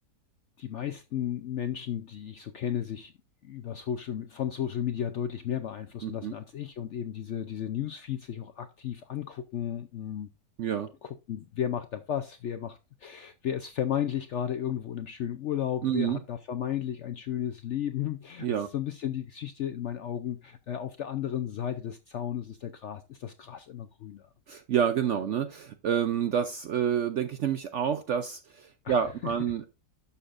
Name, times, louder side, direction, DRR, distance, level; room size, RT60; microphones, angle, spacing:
voice 1, 0.6-3.1 3.4-10.3 11.0-24.3 28.8-29.3, left 10 dB, 70° left, 0.7 m, -34 dB
voice 2, 6.0-6.3 10.6-10.9 15.8-16.2 18.4-18.7 24.5-29.6, right 8 dB, 65° right, 0.7 m, -28 dB
11.0 x 6.7 x 2.5 m
omnidirectional pair, 1.8 m